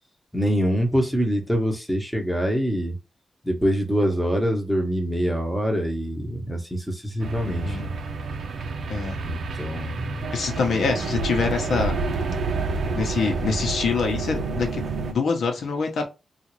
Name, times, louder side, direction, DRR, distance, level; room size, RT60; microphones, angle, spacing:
voice 1, 0.3-3.0 3.4-7.9 9.2-10.2, equal, ahead, 0.9 m, -25 dB
sound 1, 7.2-15.1, right 4 dB, 80° right, 0.6 m, -29 dB
voice 2, 10.3-12.0 12.9-16.1, left 5 dB, 75° left, 0.9 m, -25 dB
3.8 x 2.5 x 3.1 m
wide cardioid pair, 150°, 0 cm